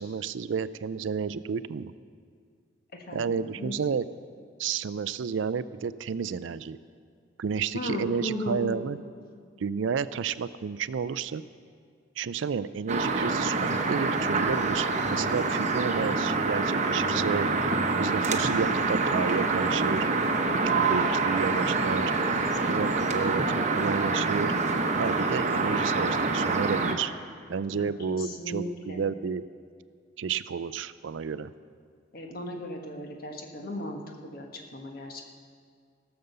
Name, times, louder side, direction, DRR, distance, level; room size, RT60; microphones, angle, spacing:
voice 1, 0.0-1.9 3.1-4.1 4.6-6.8 7.4-9.0 9.6-11.4 12.2-17.5 18.0-20.0 20.7-22.1 22.5-24.5 25.0-27.1 27.5-29.4 30.2-31.5, right 6 dB, 80° right, 16 dB, 0.4 m, -31 dB
voice 2, 2.9-3.8 7.7-8.9 20.5-20.8 27.7-29.0 32.1-35.2, left 1 dB, 50° left, 2 dB, 1.4 m, -36 dB
sound 1, 12.9-26.9, right 3 dB, 40° right, 0.9 m, -26 dB
17.0 x 6.8 x 6.8 m, 2.1 s
head